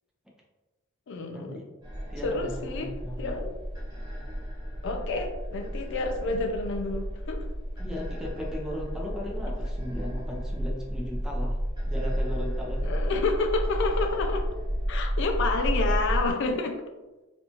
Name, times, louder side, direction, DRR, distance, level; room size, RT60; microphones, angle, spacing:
voice 1, 1.1-1.6 2.2-3.6 4.8-7.5 12.8-14.5 14.9-16.8, left 3 dB, 60° left, 5 dB, 0.4 m, -29 dB
sound 1, 1.8-16.3, equal, 20° right, 1.1 m, -31 dB
voice 2, 2.1-3.4 7.8-11.6 11.9-12.8, equal, 5° right, -2 dB, 0.6 m, -37 dB
4.2 x 2.4 x 2.8 m, 1.1 s
head